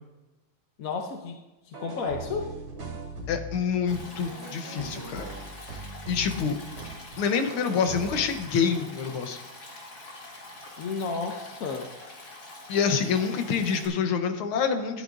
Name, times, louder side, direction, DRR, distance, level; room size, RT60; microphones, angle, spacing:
voice 1, 0.8-1.4 1.6-2.5 10.8-11.9, left 4 dB, 65° left, 3 dB, 0.8 m, -32 dB
sound 1, 1.7-8.5, right 2 dB, 70° right, 3.1 m, -40 dB
voice 2, 3.3-5.3 5.7-6.6 7.2-9.4 12.7-15.0, left 6 dB, 85° left, 7 dB, 1.8 m, -27 dB
Stream, 3.9-13.9, left 2 dB, 50° left, 2.5 m, -45 dB
13.0 x 12.5 x 2.6 m, 1.1 s
omnidirectional pair, 2.3 m